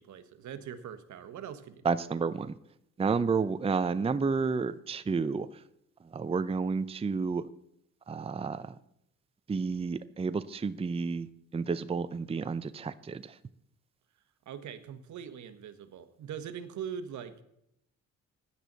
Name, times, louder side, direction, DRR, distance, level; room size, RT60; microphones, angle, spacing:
voice 1, 0.0-2.0 14.4-17.4, right 8 dB, 70° right, 10 dB, 1.4 m, -42 dB
voice 2, 1.8-2.5 3.0-5.5 6.1-7.5 8.1-8.7 9.5-11.3 11.5-13.4, right 5 dB, 20° right, 12 dB, 0.6 m, -30 dB
15.5 x 10.5 x 4.1 m, 0.76 s
cardioid pair, 90°, 30 cm